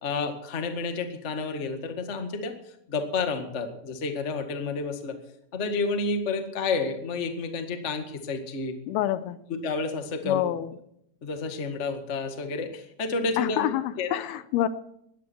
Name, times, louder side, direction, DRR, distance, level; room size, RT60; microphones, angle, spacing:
voice 1, 0.0-2.5 2.9-5.2 5.5-8.8 9.5-10.4 11.2-13.7 14.0-14.2, left 4 dB, 35° left, 5 dB, 1.2 m, -30 dB
voice 2, 8.9-9.4 10.3-10.7 13.4-14.7, left 13 dB, 80° left, 14 dB, 2.7 m, -27 dB
20.0 x 15.0 x 4.6 m, 0.75 s
omnidirectional pair, 4.4 m